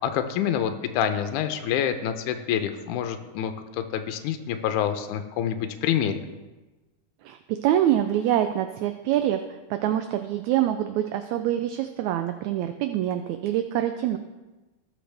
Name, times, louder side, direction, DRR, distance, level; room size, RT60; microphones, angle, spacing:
voice 1, 0.0-6.3, left 9 dB, 80° left, 7 dB, 2.1 m, -27 dB
voice 2, 7.2-14.2, right 11 dB, 80° right, 8 dB, 1.7 m, -25 dB
18.0 x 6.4 x 3.4 m, 1.1 s
omnidirectional pair, 3.7 m